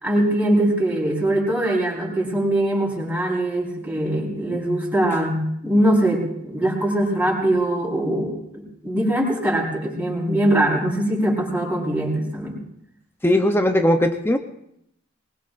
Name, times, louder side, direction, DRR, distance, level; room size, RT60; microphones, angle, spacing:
voice 1, 0.0-12.6, right 1 dB, 10° right, -4 dB, 4.5 m, -22 dB
voice 2, 13.2-14.4, left 1 dB, 10° left, 5 dB, 0.7 m, -18 dB
23.5 x 20.5 x 2.6 m, 0.75 s
head